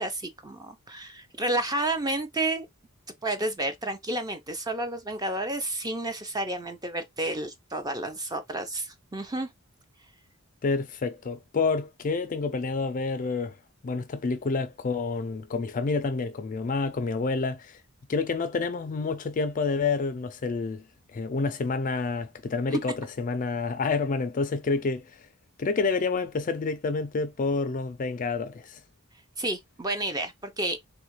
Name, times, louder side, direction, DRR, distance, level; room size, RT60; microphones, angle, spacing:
voice 1, 0.0-2.7 3.2-9.5 22.7-22.8 29.4-30.8, right 2 dB, 20° right, 0.5 m, -31 dB
voice 2, 10.6-13.5 13.8-17.8 18.1-20.8 21.1-25.1 25.6-28.8, left 4 dB, 35° left, 0.4 m, -28 dB
3.5 x 2.4 x 3.0 m
head